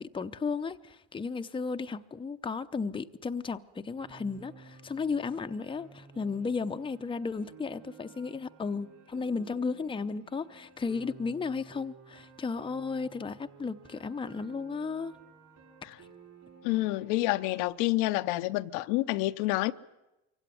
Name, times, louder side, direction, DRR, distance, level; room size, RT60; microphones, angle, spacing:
voice 1, 0.0-15.1, left 4 dB, 15° left, 0.7 m, -34 dB
Piano, 4.0-17.7, right 5 dB, 50° right, 7.3 m, -54 dB
voice 2, 16.6-19.7, left 18 dB, 75° left, 0.8 m, -28 dB
23.5 x 16.5 x 9.3 m
supercardioid pair, 100°, 37 cm